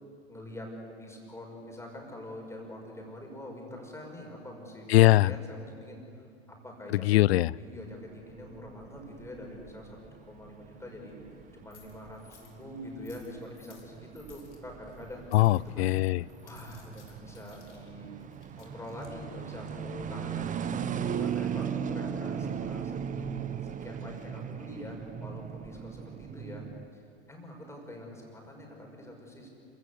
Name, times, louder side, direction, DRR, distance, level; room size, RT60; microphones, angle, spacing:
voice 1, 0.3-7.2 7.6-10.0 10.3-11.2 11.5-15.2 15.7-15.9 16.4-18.1 18.6-23.0 23.6-26.6 26.9-27.0 27.3-29.5, left 1 dB, 10° left, 0 dB, 6.2 m, -44 dB
voice 2, 4.9-5.3 6.9-7.5 15.3-16.2, left 17 dB, 60° left, 24 dB, 0.5 m, -21 dB
sound 1, 7.9-26.9, right 8 dB, 20° right, 1.0 m, -38 dB
sound 2, 9.0-21.1, left 6 dB, 80° left, 3.9 m, -62 dB
27.5 x 17.0 x 8.0 m, 2.5 s
hypercardioid pair, 95°, 35 cm